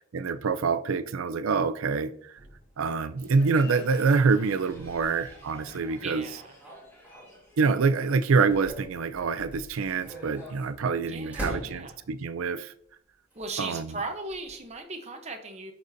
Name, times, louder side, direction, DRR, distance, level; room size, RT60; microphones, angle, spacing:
voice 1, 0.1-2.3 2.8-6.3 7.6-12.7 13.6-14.0, right 4 dB, 90° right, 0.5 m, -26 dB
sound 1, 2.4-7.7 8.1-12.3 13.3-14.8, equal, 10° right, 3.0 m, -44 dB
Crowd, 3.2-8.6, left 1 dB, 15° left, 1.6 m, -50 dB
voice 2, 6.0-6.6 11.1-12.0 13.3-15.7, right 3 dB, 35° right, 0.8 m, -37 dB
11.0 x 4.1 x 2.7 m
head